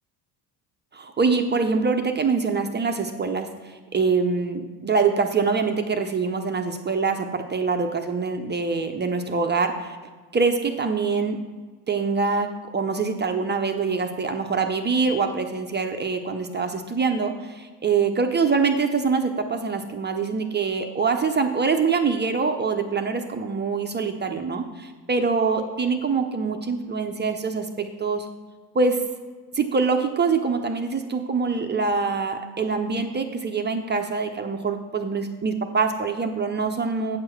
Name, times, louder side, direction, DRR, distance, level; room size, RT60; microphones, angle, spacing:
voice 1, 0.9-10.0 10.3-11.4 11.9-28.3 28.7-29.0 29.5-37.2, right 4 dB, 20° right, 5 dB, 0.6 m, -24 dB
8.6 x 4.6 x 6.4 m, 1.4 s
cardioid pair, 110°, 49 cm